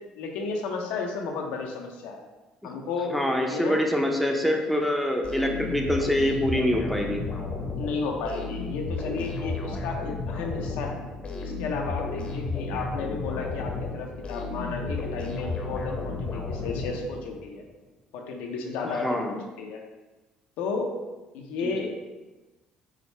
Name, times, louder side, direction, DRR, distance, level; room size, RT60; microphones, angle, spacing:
voice 1, 0.2-2.3 2.6-3.8 7.8-11.0 11.4-17.6 18.1-19.8 20.6-20.9 21.3-22.0, left 4 dB, 85° left, 2 dB, 0.5 m, -33 dB
voice 2, 3.1-7.2 18.8-19.4 21.6-21.7, equal, ahead, 1 dB, 0.5 m, -25 dB
sound 1, 5.2-17.4, left 3 dB, 40° left, 0.7 m, -33 dB
4.7 x 2.1 x 3.1 m, 1.1 s
supercardioid pair, 85°, 3 cm